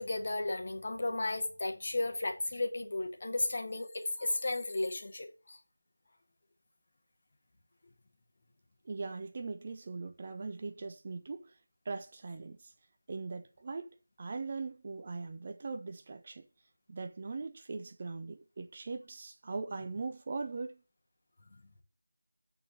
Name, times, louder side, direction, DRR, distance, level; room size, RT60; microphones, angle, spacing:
voice 1, 0.0-5.6, left 2 dB, 35° left, 1.7 m, -34 dB
voice 2, 8.8-11.5 11.9-12.7 13.1-16.5 16.9-20.8, right 4 dB, 25° right, 0.6 m, -40 dB
8.9 x 4.5 x 7.0 m
figure-of-eight pair, 170°, 0 cm